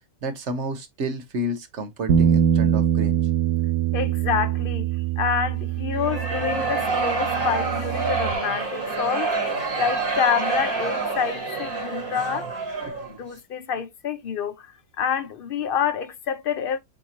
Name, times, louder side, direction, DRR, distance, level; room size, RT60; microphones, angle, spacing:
voice 1, 0.2-3.2 12.8-12.9, right 1 dB, 55° right, 1.1 m, -30 dB
Bass guitar, 2.1-8.3, right 9 dB, 90° right, 1.2 m, -24 dB
voice 2, 3.9-4.9 5.2-9.3 9.8-12.6 13.2-14.5 15.0-16.8, left 7 dB, 65° left, 0.5 m, -27 dB
sound 1, 5.9-13.2, right 4 dB, 70° right, 2.9 m, -27 dB
7.1 x 2.7 x 2.8 m
omnidirectional pair, 1.6 m